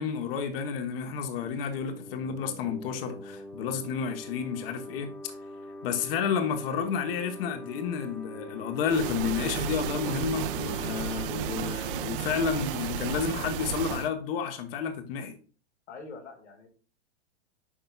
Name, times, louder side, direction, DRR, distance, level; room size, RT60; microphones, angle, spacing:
voice 1, 0.0-5.3 5.8-15.4, left 6 dB, 55° left, 1.2 m, -31 dB
sound 1, 1.4-12.8, left 1 dB, ahead, 0.4 m, -44 dB
sound 2, 8.9-14.1, right 9 dB, 50° right, 0.7 m, -33 dB
voice 2, 15.9-16.7, left 4 dB, 85° left, 2.1 m, -44 dB
8.7 x 5.4 x 2.4 m
hypercardioid pair, 120°, 34 cm